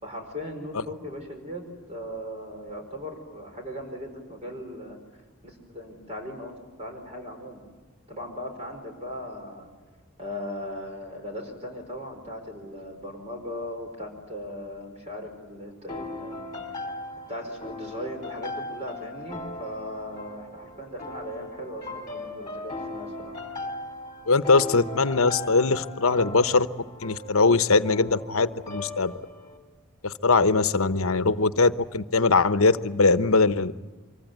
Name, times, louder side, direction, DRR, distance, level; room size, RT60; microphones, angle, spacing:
voice 1, 0.0-1.6 1.9-5.0 5.4-7.6 8.1-9.7 10.2-16.6 17.3-23.3, equal, 30° right, 3 dB, 4.9 m, -38 dB
sound 1, 15.9-29.6, left 2 dB, 20° left, 3.1 m, -38 dB
voice 2, 24.3-26.7 27.0-29.1 30.0-33.7, left 3 dB, 75° left, 12 dB, 1.0 m, -21 dB
25.0 x 24.5 x 9.4 m, 1.2 s
head